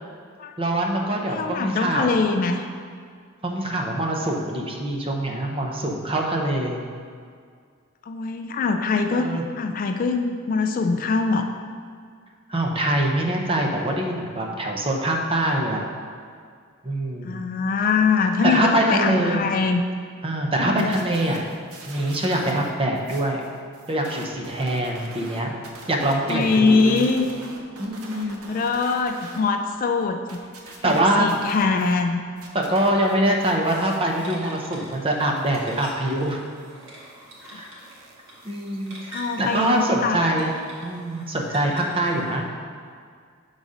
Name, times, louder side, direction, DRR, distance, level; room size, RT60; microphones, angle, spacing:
voice 1, 0.6-2.2 3.4-6.8 9.1-9.4 12.5-15.8 16.8-17.4 18.4-19.5 20.2-21.4 21.9-23.5 23.9-25.5 25.9-27.1 27.8-28.4 30.8-31.3 32.5-36.4 37.6-37.7 38.4-39.0 39.4-40.5 40.8-42.4, right 1 dB, 25° right, 1 dB, 0.7 m, -24 dB
voice 2, 1.3-2.6 8.1-11.5 17.2-19.9 20.6-20.9 26.3-27.3 28.2-30.4 30.8-32.2 37.5-37.8 39.1-40.2, left 4 dB, 40° left, 5 dB, 0.3 m, -23 dB
sound 1, 20.6-22.7 22.9-29.4 29.7-32.0 32.3-39.9, right 3 dB, 85° right, 0.8 m, -45 dB
sound 2, 32.9-42.4, equal, 65° right, 1.5 m, -45 dB
6.5 x 4.0 x 4.9 m, 2.1 s
head